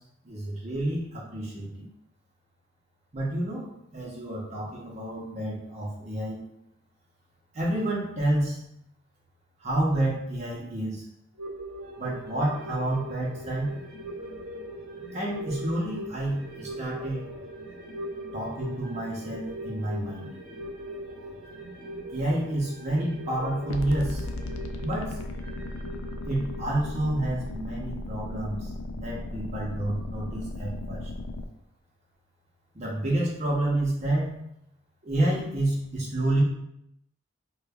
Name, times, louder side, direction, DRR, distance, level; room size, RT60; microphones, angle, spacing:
voice 1, 0.2-1.9 3.1-6.4 7.5-8.6 9.6-11.0 12.0-13.8 15.1-17.2 18.3-20.3 22.1-24.3 24.8-25.2 26.2-31.1 32.7-34.4 35.0-36.4, right 1 dB, 35° right, -4 dB, 0.6 m, -29 dB
sound 1, 11.4-28.2 28.5-28.6, right 1 dB, 80° right, 0.8 m, -40 dB
sound 2, 23.7-31.5, left 2 dB, 90° left, 0.4 m, -36 dB
5.0 x 2.2 x 2.3 m, 0.80 s
head